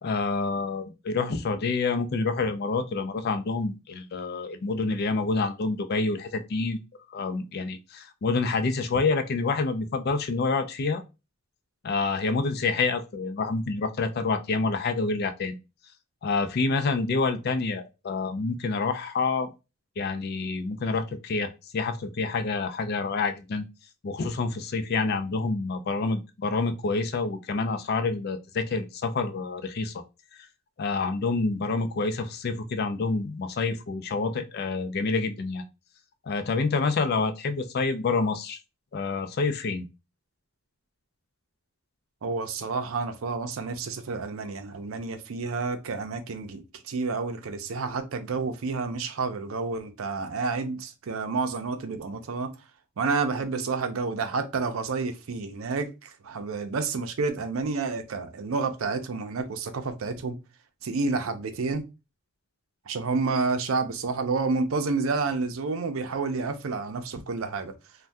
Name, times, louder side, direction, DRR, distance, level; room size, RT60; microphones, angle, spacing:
voice 1, 0.0-6.8 7.1-11.0 11.8-15.6 16.2-19.5 20.0-23.6 24.0-29.9 30.3-30.5 30.8-35.7 36.2-38.6 38.9-39.9, left 4 dB, 50° left, 0.4 m, -27 dB
voice 2, 42.2-52.5 53.0-60.4 60.8-61.8 62.9-67.7, right 4 dB, 85° right, 0.5 m, -29 dB
3.4 x 2.2 x 2.6 m
head